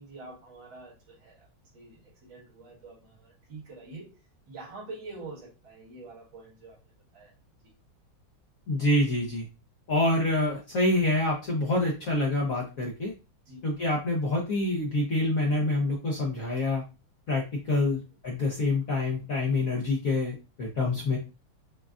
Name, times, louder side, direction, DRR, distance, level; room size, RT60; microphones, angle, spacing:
voice 1, 0.0-1.4 1.7-4.1 4.5-6.8 7.1-7.3 7.6-7.7 13.5-13.6 17.9-18.0, right 3 dB, 60° right, 2.3 m, -45 dB
voice 2, 8.7-9.5 9.9-13.1 13.6-16.8 17.3-21.2, left 2 dB, 55° left, 1.0 m, -26 dB
6.2 x 2.3 x 2.4 m
omnidirectional pair, 2.4 m